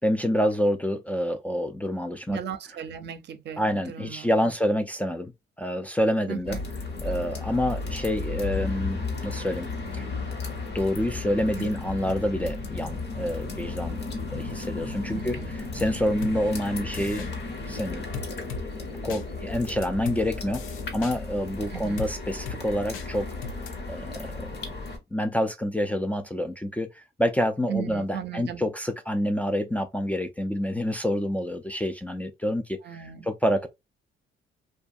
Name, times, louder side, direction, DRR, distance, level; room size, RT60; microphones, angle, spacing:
voice 1, 0.0-2.4 3.6-5.3 5.6-6.6 7.0-9.7 9.9-10.1 10.7-17.3 17.7-18.1 19.0-20.6 20.9-23.3 23.9-24.5 25.1-33.7, equal, 5° left, 0.3 m, -27 dB
voice 2, 2.3-4.5 6.3-6.6 11.4-11.7 15.1-15.6 21.7-22.1 27.7-28.6 32.8-33.3, right 7 dB, 60° right, 0.5 m, -36 dB
sound 1, 6.5-25.0, left 3 dB, 55° left, 1.0 m, -34 dB
sound 2, 16.2-16.4 16.9-17.3 18.1-18.6 19.1-19.2 19.8-20.2 20.5-21.1 22.0-22.1 22.5-22.6 22.9-23.1 23.4-23.7, left 5 dB, 85° left, 0.6 m, -36 dB
2.6 x 2.3 x 2.4 m
cardioid pair, 90°, 20 cm